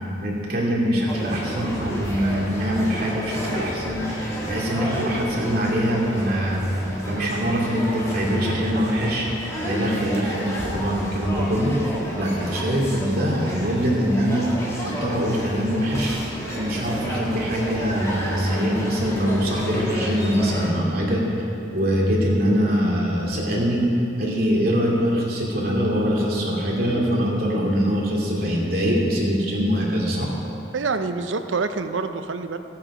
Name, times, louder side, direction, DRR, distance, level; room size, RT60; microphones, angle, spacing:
voice 1, 0.0-6.6 7.1-11.8 12.1-14.5 14.8-16.2 16.5-21.2 21.7-23.8 24.2-30.3, equal, 50° right, -4 dB, 2.5 m, -23 dB
sound 1, 1.1-20.7, equal, 15° left, 1.9 m, -31 dB
voice 2, 30.7-32.6, right 4 dB, 85° right, 9 dB, 0.7 m, -26 dB
15.5 x 8.7 x 4.9 m, 2.9 s
head